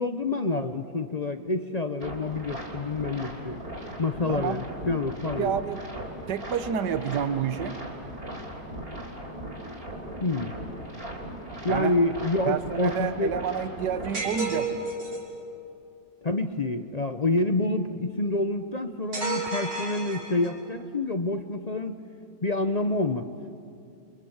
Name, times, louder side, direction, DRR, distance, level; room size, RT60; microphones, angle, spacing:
voice 1, 0.0-3.6 4.0-5.6 10.2-10.5 11.6-13.3 16.2-21.9 22.4-23.3, left 2 dB, 40° left, 8 dB, 0.6 m, -27 dB
sound 1, 2.0-14.2, right 1 dB, 35° right, 4.2 m, -39 dB
voice 2, 4.3-4.6 5.4-5.8 6.3-7.8 11.7-11.9 12.5-14.9, right 7 dB, 85° right, 11 dB, 1.6 m, -29 dB
sound 2, 14.1-15.3 19.1-20.7, right 3 dB, 60° right, 4.4 m, -32 dB
30.0 x 24.5 x 7.2 m, 2.4 s
omnidirectional pair, 1.8 m